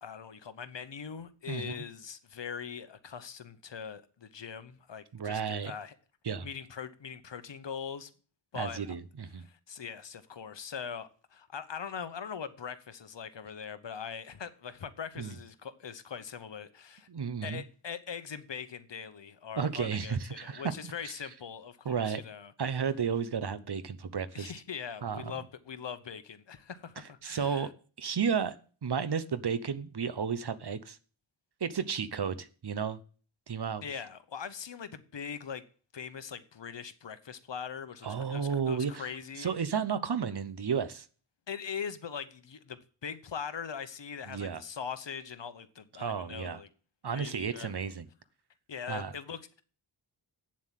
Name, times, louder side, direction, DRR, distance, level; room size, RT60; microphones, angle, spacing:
voice 1, 0.0-5.9 6.4-8.1 8.5-8.8 9.4-17.1 17.4-22.5 24.3-27.7 33.8-35.6 35.9-39.5 41.5-46.7 47.1-47.8 48.7-49.6, left 7 dB, 60° left, 1.0 m, -41 dB
voice 2, 1.5-1.8 5.1-5.7 6.2-6.5 8.5-9.5 15.2-15.3 17.1-17.6 19.6-20.9 21.8-22.2 22.6-24.5 25.0-25.3 27.2-27.7 28.0-31.0 31.6-33.0 33.5-33.8 38.0-39.1 39.4-41.1 44.3-44.6 46.0-46.6 47.0-48.1 48.9-49.1, right 6 dB, 55° right, 0.9 m, -33 dB
8.7 x 7.5 x 7.5 m
wide cardioid pair, 105°, 49 cm